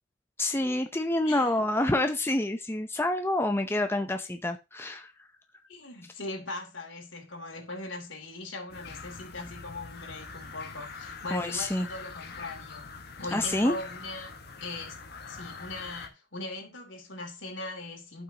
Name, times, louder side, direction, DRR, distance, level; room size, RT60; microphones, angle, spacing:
voice 1, 0.4-5.1 11.3-11.9 13.3-13.8, left 1 dB, 10° left, 0.6 m, -27 dB
voice 2, 1.2-1.6 5.7-12.9 13.2-14.3 14.6-15.0 15.3-18.2, left 2 dB, 75° left, 3.1 m, -40 dB
sound 1, 8.7-16.1, left 4 dB, 55° left, 1.6 m, -44 dB
15.0 x 5.9 x 2.9 m
head